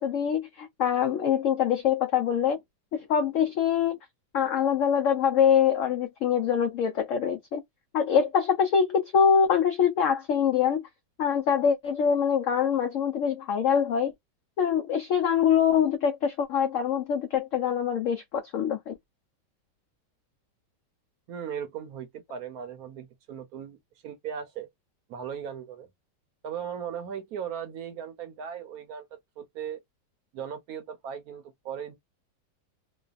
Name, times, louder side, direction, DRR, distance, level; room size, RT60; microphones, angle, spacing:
voice 1, 0.0-2.6 2.9-3.9 4.3-7.6 7.9-10.8 11.2-14.1 14.6-18.9, left 7 dB, 85° left, 0.6 m, -24 dB
voice 2, 21.3-23.8 24.0-24.7 25.1-25.9 26.4-29.8 30.3-32.0, right 8 dB, 65° right, 1.0 m, -37 dB
3.0 x 2.2 x 2.4 m
omnidirectional pair, 1.9 m